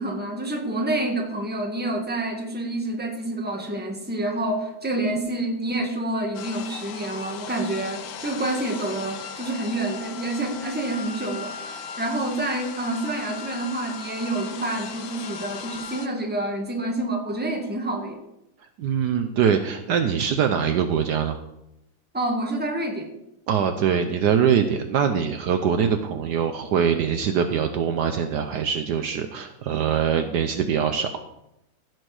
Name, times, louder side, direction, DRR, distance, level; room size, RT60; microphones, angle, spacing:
voice 1, 0.0-18.2 22.1-23.1, right 2 dB, 5° right, 1 dB, 1.4 m, -28 dB
sound 1, 6.3-16.1, left 6 dB, 80° left, 1.6 m, -37 dB
voice 2, 18.8-21.4 23.5-31.1, right 7 dB, 70° right, 7 dB, 1.2 m, -23 dB
15.5 x 6.3 x 4.9 m, 0.85 s
omnidirectional pair, 2.0 m